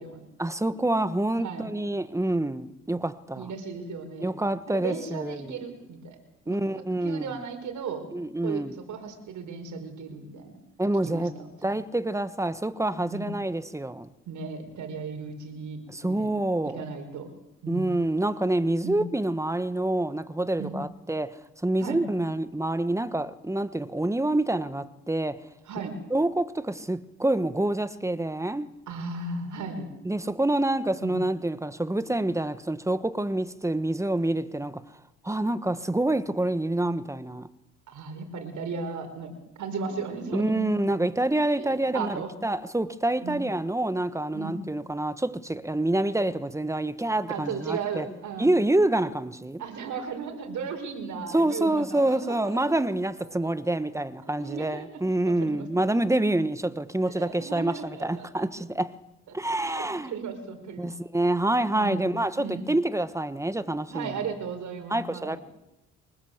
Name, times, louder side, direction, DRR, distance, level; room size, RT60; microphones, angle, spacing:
voice 1, 0.4-3.5 4.2-5.6 6.5-7.3 8.1-8.7 10.8-11.3 11.6-14.1 15.9-16.8 17.7-25.4 26.1-28.7 30.0-34.8 35.2-37.5 40.3-48.0 48.4-49.6 51.3-58.9 59.3-60.1 60.8-64.1 64.9-65.4, right 1 dB, 10° right, 1.3 m, -27 dB
voice 2, 3.4-4.3 4.7-6.2 6.5-6.6 7.0-8.1 8.4-8.6 8.9-10.6 11.0-11.5 13.1-13.4 14.3-16.3 16.6-17.3 17.6-17.9 18.8-19.0 20.6-20.8 21.8-22.0 25.7-25.9 28.9-29.9 31.0-31.2 37.9-39.3 39.6-41.3 41.6-42.3 43.2-43.4 44.3-44.6 47.3-48.5 49.6-52.8 53.6-53.7 54.4-55.7 57.1-58.5 59.3-59.4 59.6-60.9 61.7-62.1 62.4-62.7 63.9-65.4, right 5 dB, 75° right, 5.3 m, -36 dB
24.5 x 20.0 x 8.0 m
cardioid pair, 90°, 30 cm